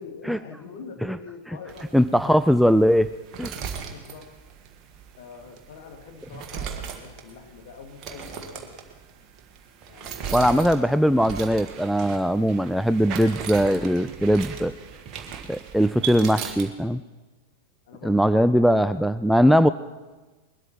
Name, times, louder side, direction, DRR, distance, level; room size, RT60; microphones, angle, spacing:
voice 1, 0.0-1.9 3.6-4.5 5.2-8.7 9.9-10.6 16.0-16.5 17.9-19.5, left 5 dB, 55° left, 4 dB, 2.3 m, -45 dB
sound 1, 1.7-16.7, right 7 dB, 35° right, 1.8 m, -38 dB
voice 2, 1.9-3.1 3.4-3.5 10.3-14.7 15.5-17.0 18.0-19.7, equal, ahead, 12 dB, 0.4 m, -20 dB
21.5 x 12.5 x 4.5 m, 1.2 s
figure-of-eight pair, 90°, 0 cm